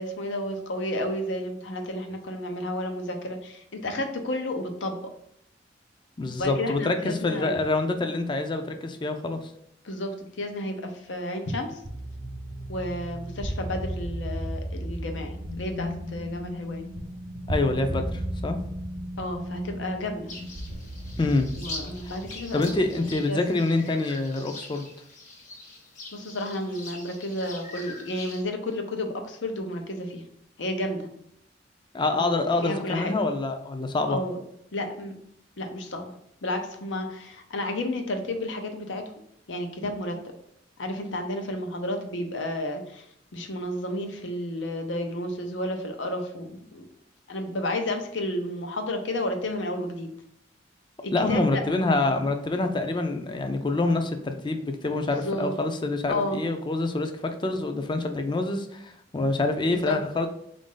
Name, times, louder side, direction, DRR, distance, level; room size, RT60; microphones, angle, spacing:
voice 1, 0.0-5.0 6.4-7.5 9.8-11.8 12.7-16.9 19.2-20.3 21.6-23.0 23.3-23.6 26.1-30.2 30.6-31.1 32.1-33.1 34.1-34.4 34.7-35.1 35.6-36.1 36.4-39.0 39.5-40.2 40.8-43.0 43.3-46.9 47.3-50.1 51.0-51.6 55.2-55.5 56.1-56.4 59.7-60.0, left 1 dB, 85° left, 4 dB, 0.7 m, -31 dB
voice 2, 6.2-9.4 17.5-18.6 21.2-21.5 22.5-24.9 31.9-34.2 51.1-60.3, left 2 dB, 25° left, 6 dB, 0.4 m, -26 dB
sound 1, 11.8-23.2, equal, 35° right, 0.5 m, -35 dB
sound 2, 20.3-28.4, left 2 dB, 40° left, 0.8 m, -43 dB
4.0 x 2.6 x 3.7 m, 0.74 s
head